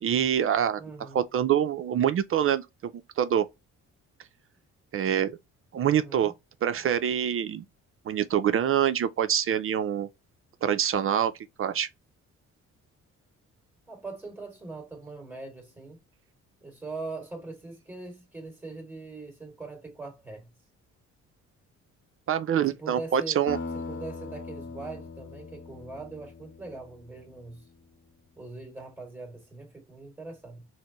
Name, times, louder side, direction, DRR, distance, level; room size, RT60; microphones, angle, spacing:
voice 1, 0.0-2.7 3.2-3.5 4.9-5.3 5.7-6.3 6.6-7.6 8.1-10.1 10.6-11.3 11.6-11.9 22.3-23.6, right 9 dB, 45° right, 0.4 m, -25 dB
voice 2, 0.8-1.2 5.9-6.3 13.9-16.0 16.6-20.5 22.7-23.4 23.9-27.7 28.4-30.7, right 3 dB, 5° right, 2.2 m, -41 dB
sound 1, 23.5-27.8, left 4 dB, 35° left, 0.7 m, -40 dB
4.1 x 2.0 x 2.9 m
cardioid pair, 90°, 30 cm